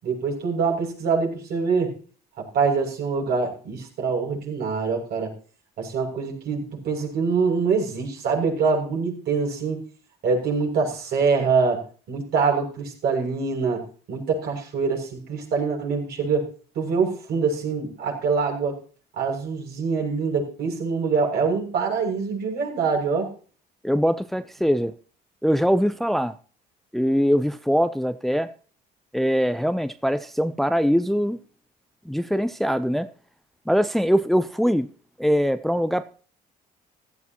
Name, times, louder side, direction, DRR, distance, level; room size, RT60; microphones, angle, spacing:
voice 1, 0.0-1.9 2.4-5.3 5.8-9.8 10.2-11.8 12.1-16.4 16.7-18.8 19.2-23.3, right 5 dB, 70° right, 6.8 m, -24 dB
voice 2, 23.8-24.9 25.4-26.4 26.9-28.5 29.1-31.4 32.1-33.1 33.7-34.9 35.2-36.1, equal, ahead, 0.6 m, -22 dB
16.0 x 14.0 x 3.0 m
cardioid pair, 110°, 17 cm